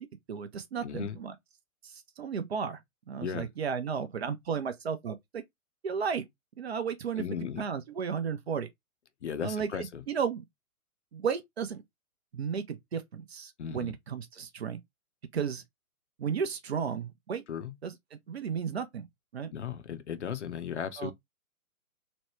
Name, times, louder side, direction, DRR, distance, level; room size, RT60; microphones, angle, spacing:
voice 1, 0.3-1.3 1.8-2.8 3.1-5.4 5.8-6.2 6.6-7.2 7.6-8.7 9.4-10.4 11.1-11.8 12.3-14.8 15.3-15.6 16.2-17.4 17.8-19.1 19.3-19.5 21.0-21.1, right 6 dB, 45° right, 0.6 m, -34 dB
voice 2, 0.8-1.2 3.2-3.5 7.2-7.6 9.2-10.0 13.6-13.9 17.5-17.7 19.5-21.1, left 8 dB, 55° left, 0.6 m, -36 dB
3.0 x 2.1 x 3.0 m
figure-of-eight pair, 120°, 44 cm